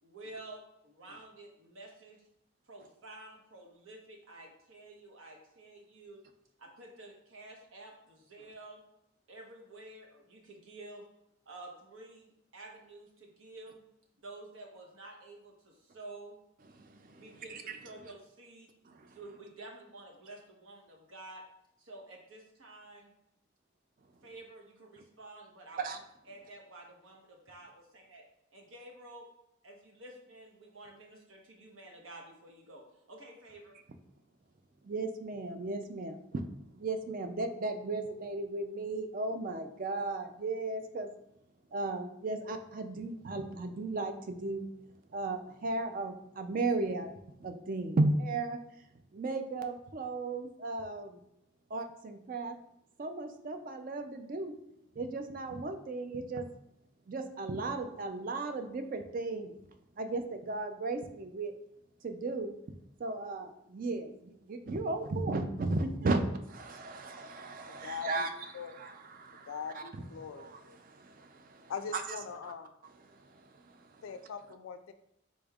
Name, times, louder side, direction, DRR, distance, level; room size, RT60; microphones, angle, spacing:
voice 1, 0.0-2.3 2.7-6.2 6.6-8.8 9.3-11.1 11.5-13.8 14.2-16.4 17.1-18.7 19.1-21.4 21.8-23.1 24.2-26.0 26.3-28.2 28.5-29.3 29.6-33.8, right 2 dB, 80° right, 1 dB, 1.0 m, -50 dB
voice 2, 16.8-17.2 17.5-17.8 18.9-19.1 25.8-26.0 34.8-36.4 36.7-41.1 41.7-44.7 45.1-47.1 47.4-48.6 49.1-51.2 51.7-52.6 53.0-54.5 55.0-56.5 57.1-59.6 60.0-61.5 62.0-62.5 63.0-72.2 72.4-72.5 73.0-74.0, right 2 dB, 40° right, 7 dB, 0.4 m, -35 dB
voice 3, 67.8-68.3 68.5-68.8 69.5-70.8 71.7-72.7 74.0-74.9, left 6 dB, 75° left, 9 dB, 0.3 m, -41 dB
5.1 x 4.3 x 2.4 m, 0.78 s
head